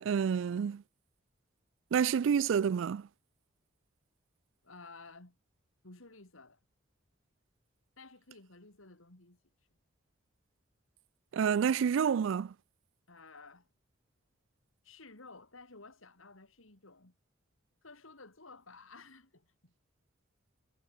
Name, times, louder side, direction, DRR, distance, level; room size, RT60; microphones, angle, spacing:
voice 1, 0.0-0.8 1.9-3.1 11.3-12.5, right 7 dB, 70° right, 0.3 m, -28 dB
voice 2, 4.6-5.4 5.8-6.6 8.0-9.4 13.1-13.7 14.8-17.1 17.8-19.7, left 3 dB, 80° left, 3.3 m, -54 dB
head